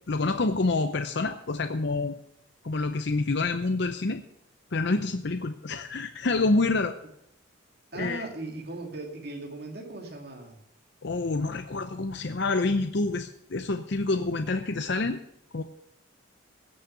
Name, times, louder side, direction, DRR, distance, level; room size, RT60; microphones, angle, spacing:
voice 1, 0.1-2.2 2.6-4.2 4.7-7.0 7.9-8.2 11.0-15.2 15.5-15.6, left 3 dB, 60° left, 7 dB, 0.7 m, -27 dB
voice 2, 7.9-10.6, right 2 dB, 50° right, 2 dB, 2.3 m, -38 dB
16.5 x 6.5 x 6.7 m, 0.74 s
head